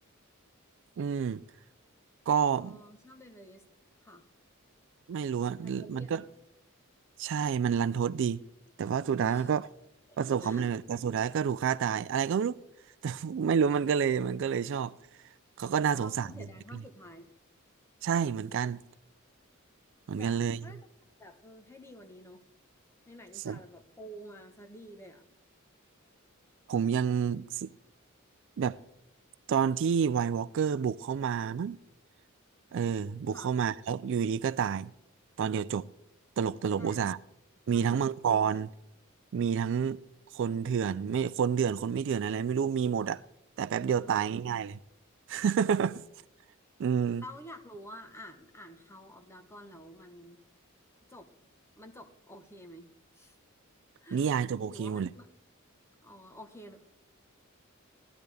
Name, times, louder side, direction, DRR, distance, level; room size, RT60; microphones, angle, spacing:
voice 1, 1.0-1.4 2.3-2.8 5.1-6.2 7.2-8.4 8.8-9.7 10.2-12.6 13.0-14.9 15.6-16.3 16.7-16.8 18.0-18.8 20.1-20.6 23.5-23.6 26.7-27.7 28.6-28.8 29.5-31.8 32.7-34.9 35.4-35.8 36.4-37.2 37.7-38.7 39.3-40.0 40.3-43.2 43.6-44.8 45.3-46.0 46.8-47.2 54.1-55.1, right 7 dB, 60° right, 0.3 m, -29 dB
voice 2, 2.6-3.6 4.0-4.3 5.6-6.3 9.2-9.5 10.1-10.7 15.9-17.3 20.1-20.8 21.2-22.4 23.1-25.2 33.3-33.5 36.8-37.1 37.7-38.1 38.5-38.6 44.0-44.5 47.2-50.4 51.1-51.3 51.8-53.4 54.0-54.3 54.7-55.3 56.0-56.9, equal, 10° left, 1.1 m, -49 dB
17.5 x 12.0 x 3.4 m
head